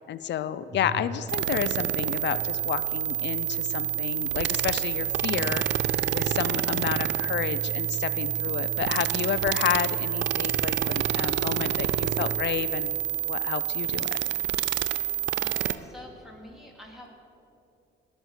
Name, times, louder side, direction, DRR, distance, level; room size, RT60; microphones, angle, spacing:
voice 1, 0.1-5.6 6.1-13.0 13.3-14.2, left 10 dB, 65° left, 14 dB, 0.5 m, -30 dB
sound 1, 0.6-12.5, right 5 dB, 40° right, 1.3 m, -39 dB
sound 2, 1.3-15.8, right 11 dB, 65° right, 0.5 m, -28 dB
voice 2, 15.3-17.1, equal, ahead, -1 dB, 2.8 m, -46 dB
18.5 x 6.5 x 6.4 m, 2.7 s
cardioid pair, 90°, 20 cm